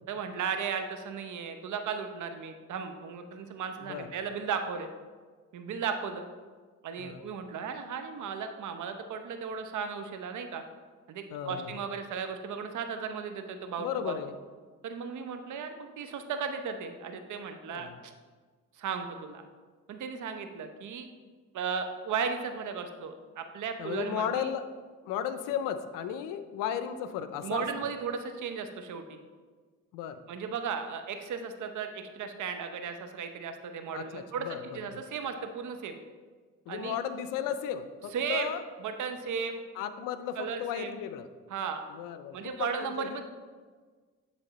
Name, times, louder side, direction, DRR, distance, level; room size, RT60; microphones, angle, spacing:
voice 1, 0.1-4.9 5.5-6.2 6.8-10.6 11.1-14.2 14.8-18.1 18.7-19.4 19.9-21.1 21.5-24.5 27.4-29.2 30.3-36.0 36.7-36.9 38.1-38.5 38.8-39.6 40.4-40.9 41.5-41.8 42.3-43.2, right 6 dB, 65° right, 7 dB, 0.8 m, -35 dB
voice 2, 3.8-4.1 7.0-7.2 11.3-11.8 13.8-14.4 17.7-18.0 23.8-24.7 25.0-27.6 29.9-30.2 33.9-34.8 36.7-38.6 39.7-41.3 41.9-43.2, left 9 dB, 85° left, 11 dB, 0.5 m, -35 dB
9.0 x 3.5 x 4.1 m, 1.5 s
supercardioid pair, 60°, 32 cm